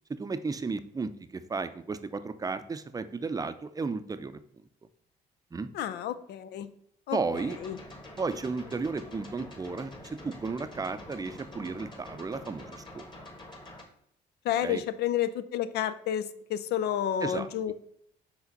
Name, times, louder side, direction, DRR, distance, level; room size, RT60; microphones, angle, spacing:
voice 1, 0.1-4.4 5.5-5.7 7.1-7.6 8.2-13.1 14.6-14.8 17.2-17.5, right 4 dB, 20° right, 12 dB, 0.5 m, -34 dB
voice 2, 5.7-6.7 7.1-7.8 14.4-17.7, left 10 dB, 75° left, 13 dB, 0.5 m, -30 dB
sound 1, 7.4-13.8, left 1 dB, 25° left, 1.7 m, -46 dB
4.8 x 3.7 x 5.3 m, 0.70 s
supercardioid pair, 70°, 17 cm